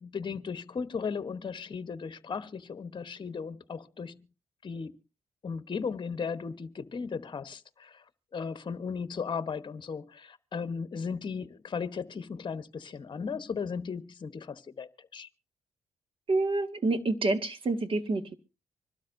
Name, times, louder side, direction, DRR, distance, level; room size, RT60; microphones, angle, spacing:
voice 1, 0.0-4.2 4.6-4.9 5.4-8.0 8.3-15.3, left 5 dB, 45° left, 1.1 m, -36 dB
voice 2, 16.3-18.2, right 2 dB, 50° right, 1.7 m, -27 dB
25.5 x 12.5 x 2.6 m
cardioid pair, 75°, 12 cm